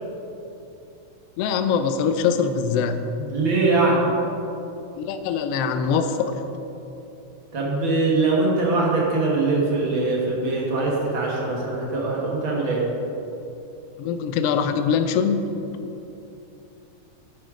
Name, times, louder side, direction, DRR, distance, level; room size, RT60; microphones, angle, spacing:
voice 1, 1.4-3.1 5.0-6.4 14.0-15.6, left 6 dB, 80° left, 9 dB, 1.4 m, -23 dB
voice 2, 3.2-4.1 7.5-12.8, right 3 dB, 45° right, -3 dB, 2.1 m, -22 dB
10.5 x 8.8 x 5.0 m, 2.9 s
omnidirectional pair, 3.4 m